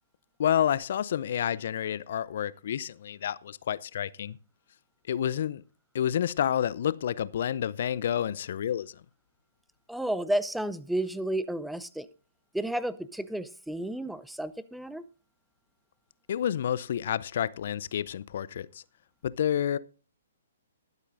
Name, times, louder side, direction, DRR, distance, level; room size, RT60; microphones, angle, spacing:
voice 1, 0.4-4.4 5.1-5.6 5.9-9.0 16.3-18.8 19.2-19.8, left 9 dB, 55° left, 0.5 m, -29 dB
voice 2, 9.9-12.1 12.5-15.0, right 1 dB, ahead, 0.5 m, -32 dB
21.0 x 8.2 x 2.6 m
figure-of-eight pair, 125°, 0 cm